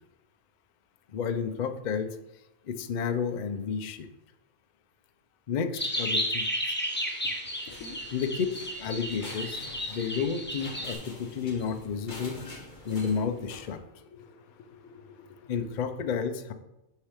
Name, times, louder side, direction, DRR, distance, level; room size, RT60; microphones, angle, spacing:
voice 1, 1.1-2.2 2.7-4.1 5.5-6.5 8.1-8.5 8.8-12.4 12.8-13.8 15.5-16.5, left 6 dB, 60° left, 8 dB, 0.4 m, -31 dB
sound 1, 5.7-10.9, equal, 10° left, 0.9 m, -33 dB
voice 2, 6.9-8.2 12.8-12.9 14.0-15.7, left 4 dB, 90° left, 8 dB, 1.2 m, -51 dB
sound 2, 7.7-13.8, left 2 dB, 35° left, 1.5 m, -46 dB
8.3 x 5.7 x 3.5 m, 0.96 s
omnidirectional pair, 1.5 m